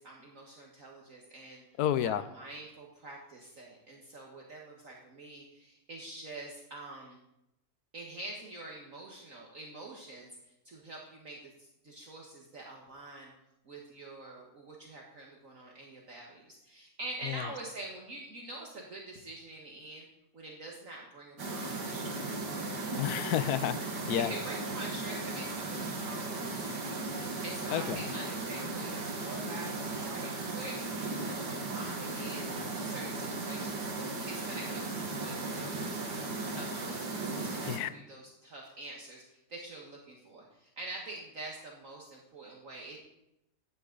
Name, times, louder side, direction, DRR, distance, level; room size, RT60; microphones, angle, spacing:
voice 1, 0.0-1.6 2.0-7.2 7.9-10.3 10.7-13.3 13.7-20.1 20.3-22.4 24.3-33.8 34.3-36.0 36.5-43.0, right 2 dB, 50° right, -2 dB, 1.9 m, -46 dB
voice 2, 1.8-2.2 17.2-17.4 23.0-24.3 27.7-28.0 37.6-37.9, left 11 dB, 70° left, 14 dB, 1.1 m, -31 dB
sound 1, 21.4-37.8, right 3 dB, 80° right, 2.5 m, -36 dB
15.5 x 9.9 x 3.9 m, 0.87 s
omnidirectional pair, 1.8 m